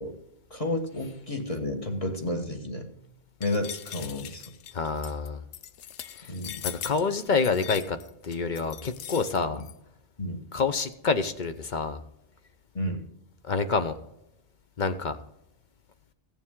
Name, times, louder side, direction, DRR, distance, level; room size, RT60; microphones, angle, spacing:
voice 1, 0.5-2.8 3.4-4.4 6.3-6.6 9.5-9.6 10.2-10.4 12.7-13.1, left 1 dB, 30° left, 3 dB, 1.5 m, -31 dB
sound 1, 3.4-9.7, left 10 dB, 85° left, 1.0 m, -40 dB
voice 2, 4.7-5.4 6.2-6.3 6.6-8.0 8.2-9.6 10.5-12.0 13.4-14.0 14.8-15.2, left 4 dB, 50° left, 10 dB, 0.8 m, -27 dB
16.0 x 7.1 x 3.7 m, 0.85 s
omnidirectional pair, 1.2 m